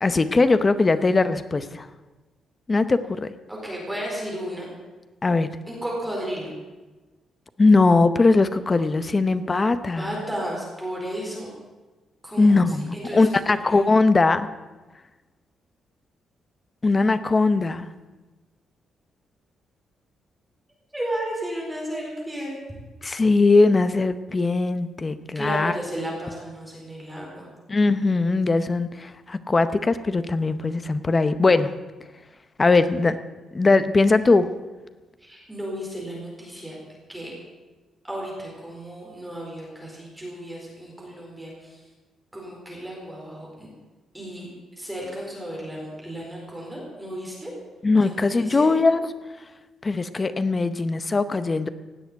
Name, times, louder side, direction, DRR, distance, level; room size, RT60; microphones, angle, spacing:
voice 1, 0.0-1.9 2.7-3.3 5.2-5.5 7.6-10.2 12.4-14.5 16.8-17.9 23.0-25.7 27.7-31.7 32.6-33.2 33.5-34.5 47.8-49.1 49.8-51.7, left 3 dB, 20° left, 11 dB, 0.7 m, -20 dB
voice 2, 3.5-4.7 5.7-6.5 10.0-11.5 12.2-12.7 12.9-13.9 20.9-22.6 25.3-27.5 35.2-36.8 37.1-37.3 38.0-41.8 42.3-43.7 44.1-44.5 44.8-47.5 48.0-48.7, equal, 5° right, -3 dB, 4.4 m, -33 dB
17.0 x 7.8 x 9.4 m, 1.2 s
cardioid pair, 170°, 0 cm